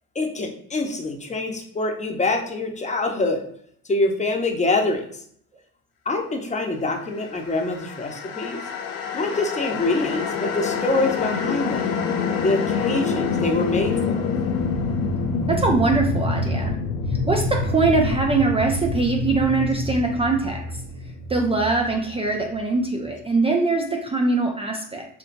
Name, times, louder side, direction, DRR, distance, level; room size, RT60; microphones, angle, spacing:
voice 1, 0.1-3.4 3.9-5.0 6.1-8.6 9.1-11.8 12.4-14.3, left 2 dB, 15° left, 2 dB, 0.8 m, -25 dB
sound 1, 7.3-22.5, left 4 dB, 55° left, 0.6 m, -26 dB
voice 2, 15.5-16.7 17.3-20.6 21.3-25.1, right 3 dB, 15° right, 2 dB, 0.4 m, -22 dB
4.6 x 2.2 x 2.6 m, 0.64 s
hypercardioid pair, 60°, 42 cm